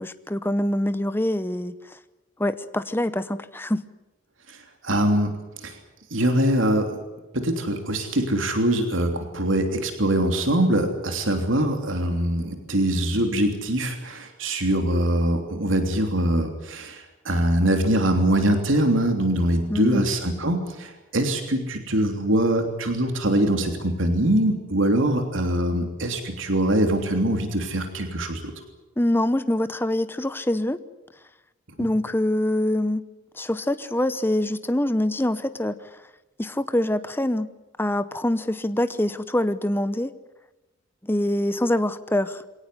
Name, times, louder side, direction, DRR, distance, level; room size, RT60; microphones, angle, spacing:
voice 1, 0.0-2.0 2.4-3.8 19.7-20.0 29.0-30.8 31.8-33.0 33.3-35.8 36.4-37.5 37.8-40.1 41.0-42.4, left 1 dB, 10° left, 0.8 m, -24 dB
voice 2, 4.5-5.3 5.6-5.8 6.1-7.0 7.3-28.5, right 1 dB, 80° right, 3.2 m, -23 dB
23.5 x 18.0 x 9.9 m
head